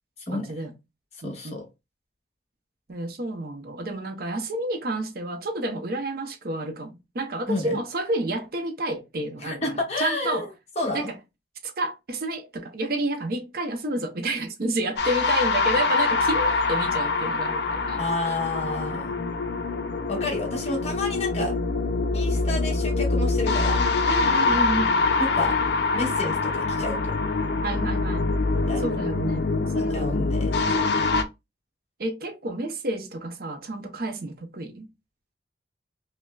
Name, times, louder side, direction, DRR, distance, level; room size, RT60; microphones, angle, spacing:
voice 1, 0.3-0.7 1.2-1.6 2.9-10.5 10.9-11.2 11.6-18.0 20.2-20.3 24.1-25.0 27.6-28.3 28.8-30.2 32.0-34.9, right 1 dB, 55° right, 0.7 m, -30 dB
voice 2, 1.2-1.7 7.5-7.8 9.4-10.5 10.8-11.1 18.0-19.3 20.1-21.5 22.1-23.8 25.2-25.6 25.9-27.2 28.5-28.9 29.9-30.6, left 2 dB, 40° left, 1.3 m, -30 dB
sound 1, 15.0-31.2, left 3 dB, 70° left, 0.5 m, -24 dB
5.2 x 2.1 x 2.3 m
head